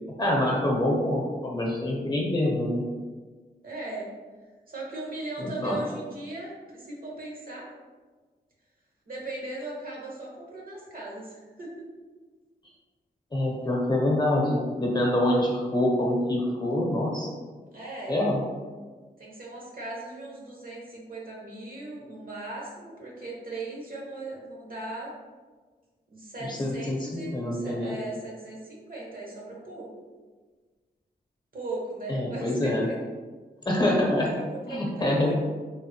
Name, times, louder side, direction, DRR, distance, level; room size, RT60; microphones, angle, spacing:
voice 1, 0.2-2.8 5.4-5.8 13.3-17.3 18.1-18.4 26.4-27.9 32.1-32.9 33.6-34.3 34.7-35.3, left 1 dB, 25° left, -2 dB, 0.8 m, -25 dB
voice 2, 3.6-4.1 4.7-7.7 9.1-11.8 17.7-18.2 19.2-25.1 26.1-29.9 31.5-32.9 34.0-35.3, right 2 dB, 55° right, -4 dB, 1.0 m, -38 dB
3.6 x 2.0 x 2.8 m, 1.4 s
cardioid pair, 70°, 17 cm